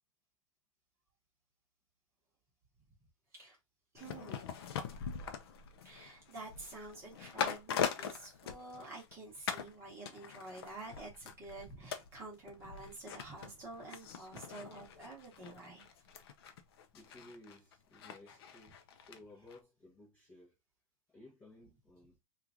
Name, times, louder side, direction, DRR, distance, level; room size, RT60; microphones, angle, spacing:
voice 1, 3.9-4.4 5.8-15.9, right 2 dB, 15° right, 1.0 m, -49 dB
sound 1, 4.0-9.1 9.5-9.7 10.1-19.2 19.5-19.6, left 7 dB, 45° left, 0.6 m, -42 dB
voice 2, 16.9-20.6 21.1-22.2, left 2 dB, 10° left, 0.8 m, -57 dB
2.9 x 2.5 x 3.6 m
supercardioid pair, 175°, 17 cm